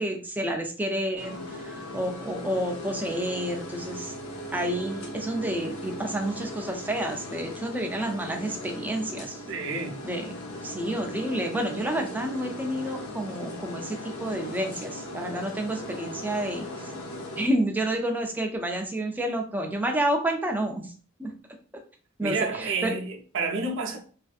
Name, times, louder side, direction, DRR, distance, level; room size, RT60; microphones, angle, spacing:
voice 1, 0.0-4.1 4.5-9.4 10.0-10.3 10.6-16.7 17.4-20.9 21.2-21.3 22.2-23.0, right 1 dB, 10° right, 0.5 m, -29 dB
sound 1, 1.2-17.5, left 1 dB, 85° left, 0.7 m, -38 dB
voice 2, 9.5-10.0 22.2-24.0, right 4 dB, 65° right, 0.6 m, -30 dB
3.2 x 2.6 x 2.4 m
head